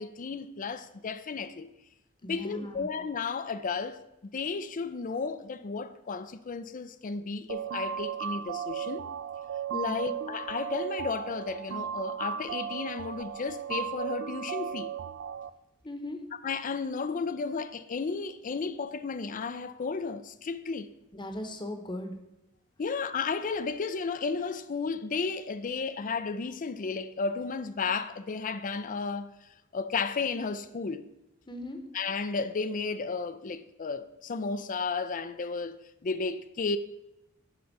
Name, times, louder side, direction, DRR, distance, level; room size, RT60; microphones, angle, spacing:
voice 1, 0.0-1.7 2.2-4.0 4.3-9.1 9.7-14.9 16.4-20.9 22.8-29.3 29.7-31.1 31.9-35.8 36.0-36.8, left 4 dB, 40° left, 0.5 m, -33 dB
voice 2, 2.2-2.9 9.8-10.2 15.8-16.2 21.1-22.2 31.5-31.8, left 1 dB, 25° left, 1.0 m, -38 dB
sound 1, 7.5-15.5, right 9 dB, 60° right, 0.4 m, -36 dB
10.5 x 3.8 x 5.8 m
head